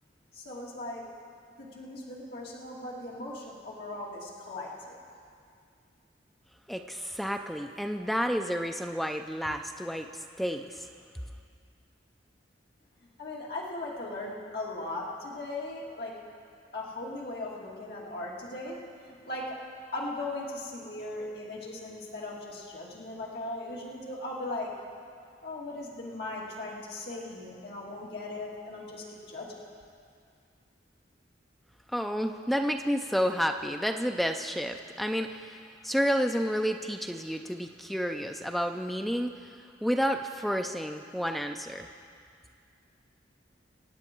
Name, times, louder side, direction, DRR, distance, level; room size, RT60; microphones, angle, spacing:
voice 1, 0.3-1.0 1.6-5.0 13.2-16.1 16.7-18.8 19.0-19.6 19.9-24.7 25.4-29.6, left 2 dB, 55° left, -4 dB, 2.2 m, -38 dB
voice 2, 6.7-10.9 31.9-41.9, equal, ahead, 5 dB, 0.4 m, -30 dB
25.5 x 8.9 x 4.5 m, 2.3 s
head